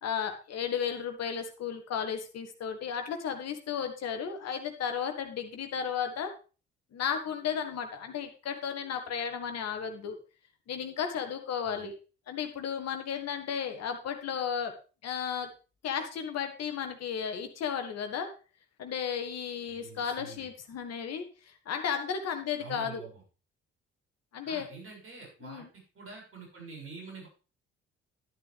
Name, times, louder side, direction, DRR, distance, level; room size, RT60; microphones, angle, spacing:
voice 1, 0.0-6.3 6.9-10.2 10.7-11.9 12.3-14.7 15.0-15.5 15.8-18.3 18.8-23.0 24.3-24.7 25.4-25.7, left 7 dB, 50° left, 6 dB, 1.7 m, -34 dB
voice 2, 19.7-20.5 22.6-23.2 24.4-27.3, right 4 dB, 40° right, -2 dB, 6.6 m, -47 dB
11.0 x 10.5 x 3.4 m, 0.35 s
figure-of-eight pair, 45°, 33 cm